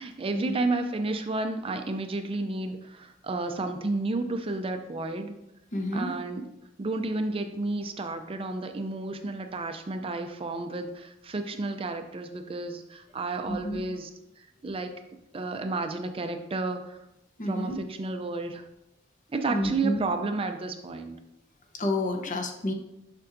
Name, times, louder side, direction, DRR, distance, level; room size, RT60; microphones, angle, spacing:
voice 1, 0.0-5.4 5.9-6.4 6.8-14.1 14.6-14.9 15.3-17.0 17.5-18.6 19.3-21.2, right 3 dB, 30° right, 6 dB, 0.4 m, -31 dB
voice 2, 5.7-6.1 13.5-13.8 17.4-17.8 19.5-20.0 21.7-22.7, left 1 dB, 40° left, 4 dB, 0.8 m, -29 dB
6.7 x 6.0 x 2.6 m, 0.87 s
head